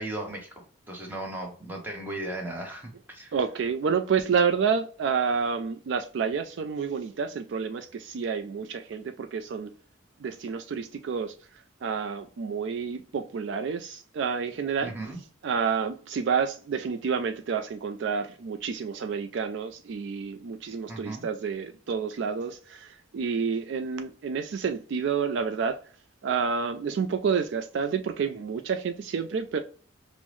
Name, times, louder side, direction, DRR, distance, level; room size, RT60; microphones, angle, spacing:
voice 1, 0.0-3.4 14.8-15.2 20.9-21.3, right 1 dB, 10° right, 0.9 m, -36 dB
voice 2, 3.3-9.7 10.2-11.3 11.8-14.9 15.4-25.8 26.2-29.6, right 6 dB, 60° right, 0.3 m, -29 dB
5.3 x 2.0 x 3.1 m
head